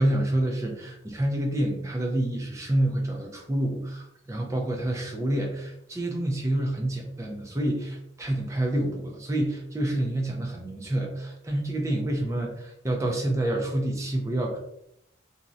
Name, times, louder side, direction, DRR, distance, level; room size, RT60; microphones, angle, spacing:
voice 1, 0.0-14.6, right 1 dB, 15° right, 0 dB, 0.3 m, -28 dB
2.6 x 2.0 x 2.4 m, 0.78 s
head